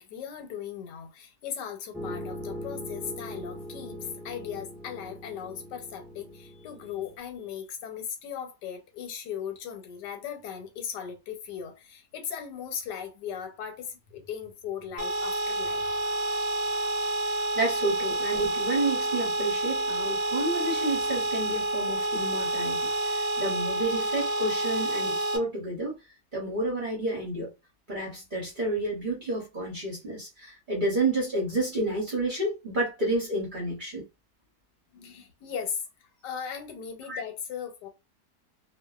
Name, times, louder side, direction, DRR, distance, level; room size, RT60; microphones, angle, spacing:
voice 1, 0.0-4.0 4.2-15.8 17.3-17.5 34.9-35.8 36.2-37.9, left 8 dB, 90° left, 1.3 m, -38 dB
sound 1, 1.9-7.2, equal, 5° right, 0.7 m, -40 dB
sound 2, 15.0-25.4, right 1 dB, 85° right, 1.2 m, -29 dB
voice 2, 17.5-22.8 23.0-26.0 26.3-27.5 27.9-34.0 37.1-37.2, right 2 dB, 40° right, 0.8 m, -30 dB
2.5 x 2.4 x 2.3 m
omnidirectional pair, 1.8 m